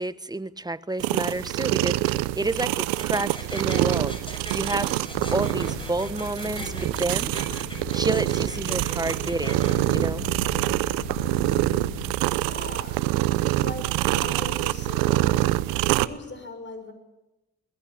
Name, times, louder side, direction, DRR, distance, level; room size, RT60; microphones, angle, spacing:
voice 1, 0.0-4.2 4.5-4.9 5.3-7.3 7.9-10.3, right 2 dB, 10° right, 13 dB, 1.2 m, -29 dB
sound 1, 1.0-16.1, right 17 dB, 85° right, 0.8 m, -26 dB
sound 2, 3.0-9.7, equal, 15° left, 6.7 m, -39 dB
sound 3, 5.1-12.2, left 6 dB, 60° left, 1.9 m, -39 dB
voice 2, 12.4-13.0 13.4-15.4 16.0-16.9, left 3 dB, 35° left, 8 dB, 6.4 m, -39 dB
22.0 x 17.5 x 8.7 m, 1.0 s
supercardioid pair, 50°, 33 cm